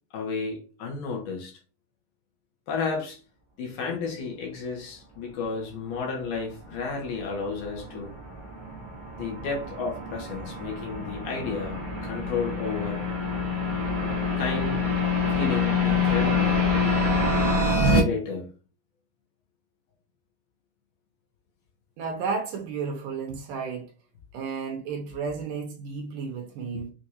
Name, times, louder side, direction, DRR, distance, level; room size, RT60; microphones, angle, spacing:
voice 1, 0.1-1.6 2.7-3.2 3.6-8.1 9.2-13.0 14.4-14.8 15.3-16.7 17.8-18.5, left 4 dB, 70° left, 2.5 m, -32 dB
sound 1, 6.5-18.0, left 3 dB, 30° right, 0.8 m, -26 dB
voice 2, 22.0-23.9 24.3-26.9, right 5 dB, 75° right, 2.2 m, -32 dB
6.3 x 2.5 x 2.8 m
omnidirectional pair, 4.1 m